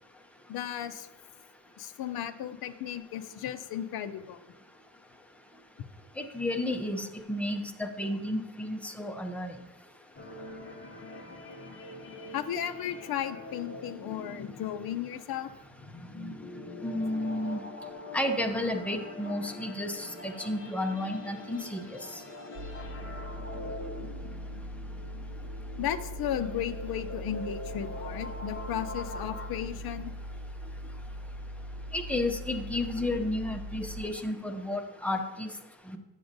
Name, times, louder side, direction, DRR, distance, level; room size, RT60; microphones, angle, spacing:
voice 1, 0.5-1.1 1.8-4.5 12.3-15.5 23.0-23.1 25.8-30.1, left 10 dB, 65° left, 10 dB, 0.5 m, -35 dB
voice 2, 6.2-9.5 16.8-17.6 18.1-21.9 31.9-35.5 35.9-36.0, left 1 dB, 5° left, 5 dB, 0.4 m, -32 dB
sound 1, 10.1-29.5, left 2 dB, 30° left, 0.8 m, -44 dB
sound 2, 22.6-34.1, equal, 85° right, 0.7 m, -40 dB
9.4 x 7.0 x 2.6 m, 1.0 s
wide cardioid pair, 165°, 41 cm